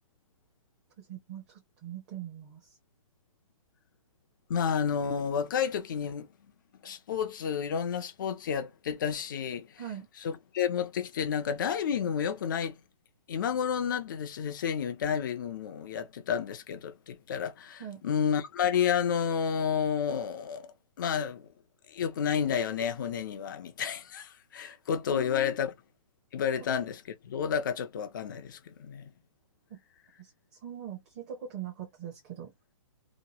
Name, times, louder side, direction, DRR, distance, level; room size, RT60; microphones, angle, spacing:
voice 1, 1.0-2.6 9.8-10.1 17.8-18.0 25.1-25.6 29.7-29.8 30.2-30.3 30.6-32.5, right 8 dB, 25° right, 0.8 m, -41 dB
voice 2, 4.5-6.3 6.8-9.7 10.2-12.7 13.3-20.7 21.0-21.5 21.9-25.7 26.3-29.1, left 7 dB, 35° left, 0.5 m, -30 dB
2.9 x 2.2 x 2.8 m
hypercardioid pair, 170°, 18 cm